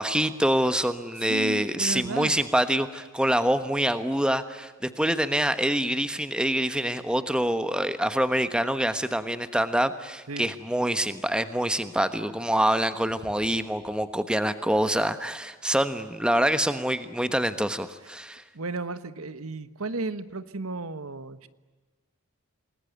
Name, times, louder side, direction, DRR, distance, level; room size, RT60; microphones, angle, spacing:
voice 1, 0.0-18.4, right 1 dB, 5° right, 11 dB, 1.2 m, -25 dB
voice 2, 1.2-2.4 10.3-10.5 18.5-21.5, right 3 dB, 80° right, 13 dB, 1.4 m, -34 dB
28.5 x 20.5 x 9.4 m, 1.3 s
head